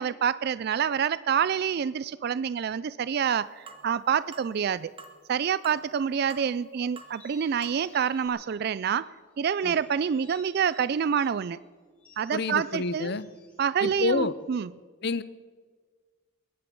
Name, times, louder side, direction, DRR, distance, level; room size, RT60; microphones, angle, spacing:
voice 1, 0.0-4.9 5.3-9.1 9.4-11.6 12.2-13.2 13.6-14.7, right 7 dB, 50° right, 17 dB, 0.3 m, -27 dB
sound 1, 3.7-3.9 4.3-4.5 5.0-5.2 5.6-5.9 6.3-6.6 7.0-7.1 7.6-7.8 8.3-8.4, right 4 dB, 30° right, 1.3 m, -45 dB
sound 2, 7.0-9.1 9.5-11.4 12.0-14.5, left 1 dB, 5° left, 4.3 m, -57 dB
voice 2, 12.3-13.3 13.8-14.3 15.0-15.2, left 3 dB, 55° left, 16 dB, 0.7 m, -28 dB
21.5 x 10.5 x 5.3 m, 1.5 s
head